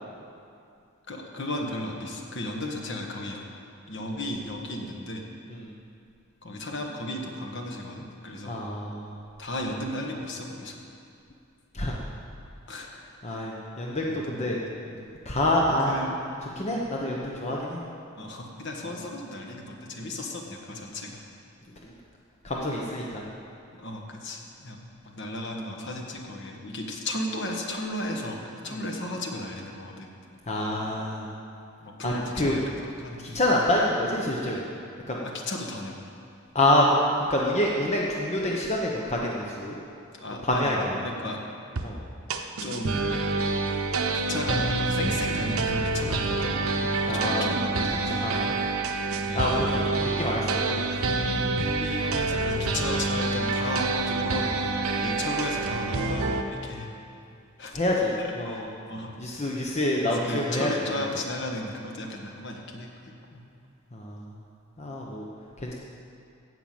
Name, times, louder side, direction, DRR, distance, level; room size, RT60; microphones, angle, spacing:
voice 1, 1.1-3.4 3.9-5.2 6.4-8.6 9.4-10.7 12.7-13.0 13.3-13.4 14.0-15.0 15.9-16.1 18.2-21.2 23.7-24.8 25.0-30.1 31.8-33.4 35.2-36.0 40.1-41.4 42.6-43.1 44.1-48.2 49.2-49.7 50.5-50.6 51.8-54.6 55.0-56.9 57.6-58.0 58.4-59.1 60.0-63.4, left 1 dB, 55° left, 1 dB, 1.5 m, -35 dB
voice 2, 8.4-9.2 11.7-11.9 13.2-14.6 15.2-16.2 16.6-17.8 18.9-19.0 21.8-21.9 22.4-23.2 30.5-31.3 32.0-32.6 33.2-34.7 35.1-35.2 36.5-39.8 40.4-40.9 41.8-42.0 47.1-47.5 47.9-48.5 49.3-49.7 50.0-50.9 57.7-58.1 58.4-58.6 59.2-61.0 63.9-64.3 64.8-65.2 65.6-65.7, left 1 dB, 30° left, -3 dB, 1.1 m, -27 dB
sound 1, 41.8-41.9 42.3-56.4, right 3 dB, 80° right, 0.9 m, -27 dB
16.0 x 5.8 x 7.7 m, 2.5 s
head